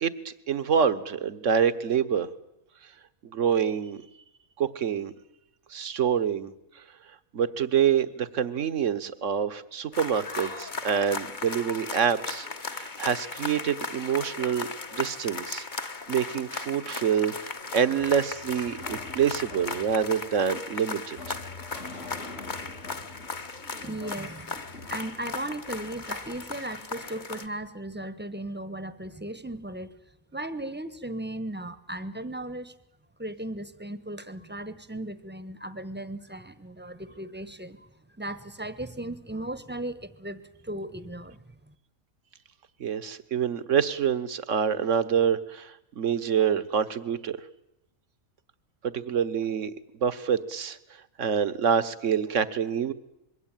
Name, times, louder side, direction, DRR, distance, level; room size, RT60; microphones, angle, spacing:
voice 1, 0.0-2.3 3.2-4.0 4.6-5.1 5.7-6.5 7.3-21.4 42.8-47.4 48.8-49.7 50.0-50.8 51.2-52.9, right 8 dB, 60° right, 13 dB, 1.5 m, -26 dB
sound 1, 9.9-27.5, left 4 dB, 35° left, 1.3 m, -37 dB
sound 2, 18.0-26.1, left 2 dB, 60° left, 3.2 m, -45 dB
voice 2, 23.8-24.5 24.9-30.0 30.3-32.7 33.2-37.9 38.2-41.7, right 1 dB, 10° right, 14 dB, 1.1 m, -36 dB
26.0 x 22.5 x 9.1 m, 0.83 s
omnidirectional pair, 1.5 m